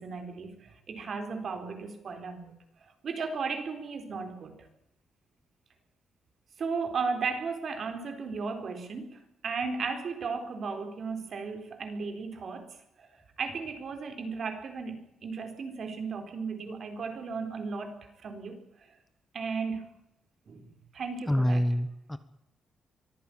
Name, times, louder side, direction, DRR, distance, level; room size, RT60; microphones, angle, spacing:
voice 1, 0.0-2.5 2.8-4.7 6.6-19.0 19.3-19.9 20.5-21.6, right 4 dB, 50° right, 7 dB, 4.1 m, -35 dB
voice 2, 21.3-22.2, equal, 5° left, 11 dB, 1.1 m, -26 dB
24.0 x 15.0 x 8.8 m, 0.84 s
cardioid pair, 150°, 0 cm